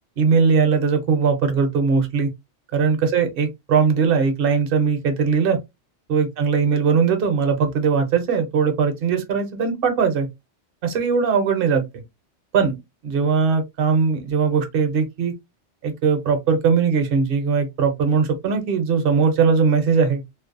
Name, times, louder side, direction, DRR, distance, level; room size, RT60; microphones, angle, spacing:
voice 1, 0.2-2.3 2.7-5.6 6.1-10.3 10.8-11.8 12.5-12.8 13.0-15.3 15.8-20.2, right 5 dB, 60° right, 0.7 m, -20 dB
2.5 x 2.0 x 2.4 m
omnidirectional pair, 1.2 m